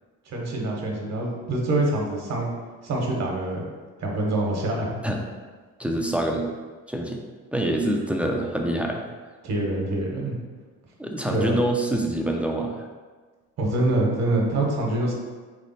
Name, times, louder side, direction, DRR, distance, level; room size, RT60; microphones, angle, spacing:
voice 1, 0.3-2.5 2.8-3.6 4.0-5.0 9.4-10.4 11.3-11.5 13.6-15.1, right 2 dB, 55° right, -1 dB, 1.1 m, -25 dB
voice 2, 5.8-6.5 6.9-7.2 7.5-9.0 11.0-12.9, right 1 dB, 5° right, 1 dB, 0.4 m, -25 dB
3.6 x 3.3 x 4.0 m, 1.4 s
cardioid pair, 110°, 32 cm